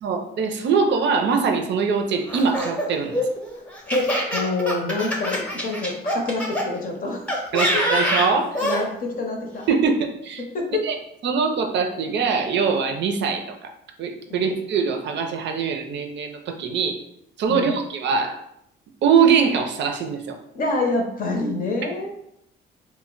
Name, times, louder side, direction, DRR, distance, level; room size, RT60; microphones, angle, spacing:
voice 1, 0.0-3.2 7.5-8.6 9.7-10.4 10.8-11.0 11.2-13.4 14.0-17.0 17.4-18.4 19.0-20.4, right 5 dB, 65° right, 5 dB, 0.5 m, -22 dB
Laughter, 2.3-6.7 7.3-8.8, equal, 5° left, 0.7 m, -25 dB
voice 2, 3.8-7.2 7.7-7.8 8.6-9.7 10.4-10.9 14.3-14.5 17.5-17.7 20.5-22.1, left 2 dB, 45° left, 1 dB, 0.7 m, -26 dB
2.1 x 2.1 x 3.7 m, 0.75 s
cardioid pair, 90°, 20 cm